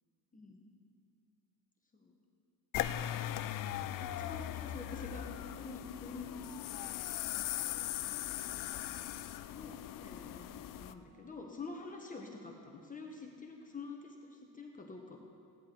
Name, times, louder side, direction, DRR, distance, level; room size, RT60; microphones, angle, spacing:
voice 1, 0.3-0.6 1.9-2.2 2.7-3.0 4.0-6.8 8.3-8.7 9.5-15.2, left 3 dB, 20° left, 1 dB, 1.1 m, -47 dB
sound 1, 2.7-10.9, left 12 dB, 55° left, 0.5 m, -39 dB
16.0 x 10.5 x 4.5 m, 2.4 s
cardioid pair, 120°, 40 cm